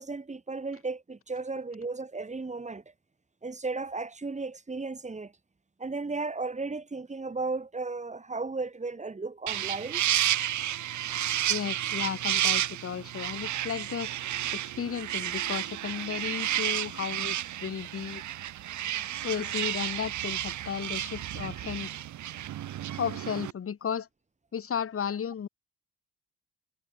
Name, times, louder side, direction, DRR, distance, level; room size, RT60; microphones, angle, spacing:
voice 1, 0.0-2.8 3.4-5.3 5.8-10.0, right 3 dB, 25° right, 4.9 m, -35 dB
sound 1, 9.5-23.5, right 12 dB, 70° right, 2.1 m, -31 dB
voice 2, 11.5-14.1 14.5-17.4 17.6-18.2 19.2-21.9 23.0-24.1 24.5-25.5, left 7 dB, 50° left, 2.9 m, -34 dB
cardioid pair, 90°, 30 cm